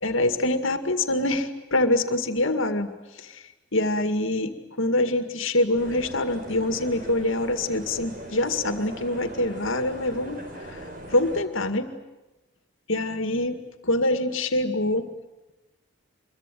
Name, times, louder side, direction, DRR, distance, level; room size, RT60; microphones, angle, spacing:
voice 1, 0.0-2.9 3.2-3.4 3.7-10.8 11.1-11.9 12.9-13.6 13.8-15.1, left 1 dB, 70° left, 8 dB, 2.1 m, -25 dB
sound 1, 5.8-11.4, right 1 dB, 40° right, 4.8 m, -40 dB
26.5 x 23.0 x 9.3 m, 1.0 s
head